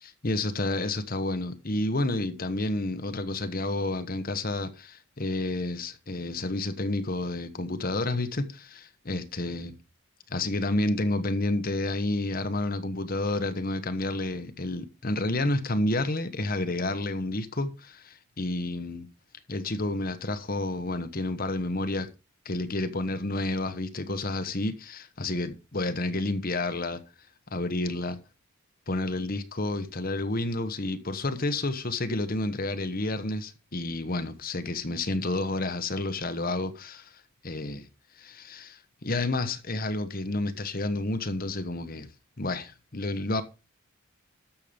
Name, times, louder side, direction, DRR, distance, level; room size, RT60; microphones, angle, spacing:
voice 1, 0.0-9.7 10.3-19.1 19.5-22.1 22.4-27.0 27.5-28.2 28.9-37.9 38.1-42.1 42.4-43.4, left 2 dB, 40° left, 1.2 m, -30 dB
13.0 x 7.1 x 5.2 m
head